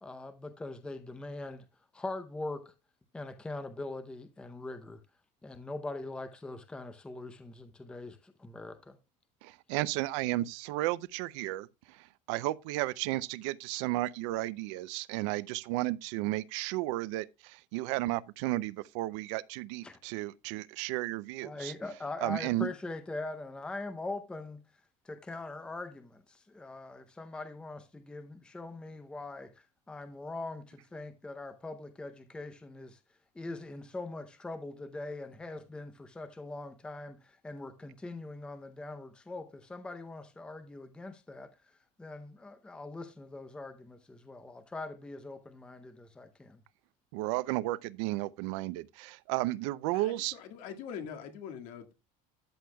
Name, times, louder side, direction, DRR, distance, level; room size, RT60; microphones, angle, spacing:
voice 1, 0.0-1.6 1.9-2.7 3.1-5.0 5.4-9.0 19.8-20.0 21.4-24.6 25.0-29.5 29.9-33.0 33.3-41.5 42.0-46.6, left 2 dB, 5° left, 0.6 m, -42 dB
voice 2, 9.4-11.7 12.3-21.7 22.2-22.7 47.1-50.4, right 18 dB, 75° right, 0.5 m, -33 dB
voice 3, 49.9-51.9, left 7 dB, 55° left, 2.0 m, -43 dB
13.0 x 7.8 x 2.3 m
cardioid pair, 170°, 16 cm